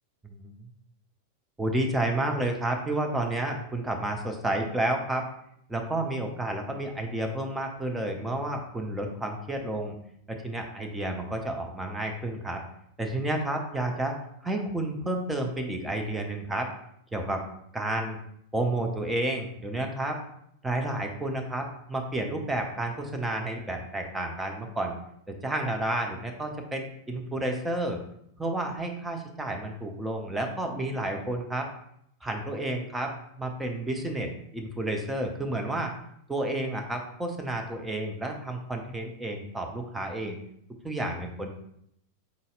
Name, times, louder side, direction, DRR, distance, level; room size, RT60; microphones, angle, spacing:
voice 1, 0.2-0.7 1.6-5.3 5.7-9.9 10.3-12.6 13.0-16.7 17.1-17.4 17.7-18.2 18.5-20.2 20.6-25.0 25.3-28.0 28.4-31.7 32.2-35.9 36.3-40.4 40.8-41.5, right 1 dB, 10° right, 2 dB, 0.6 m, -31 dB
4.0 x 4.0 x 2.5 m, 0.73 s
figure-of-eight pair, 90°, 0 cm